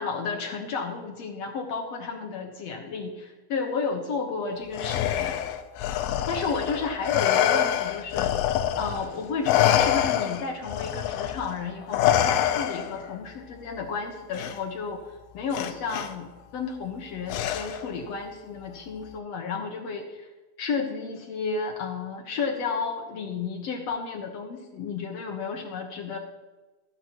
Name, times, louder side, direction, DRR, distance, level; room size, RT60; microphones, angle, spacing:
voice 1, 0.0-5.4 6.3-8.4 8.8-20.3 20.6-26.2, left 5 dB, 65° left, 2 dB, 1.6 m, -32 dB
Respiratory sounds, 4.7-9.1 9.4-13.1 14.3-14.5 15.5-16.1 17.3-17.9, left 11 dB, 90° left, 2.6 m, -25 dB
14.5 x 13.5 x 3.0 m, 1.2 s
omnidirectional pair, 4.5 m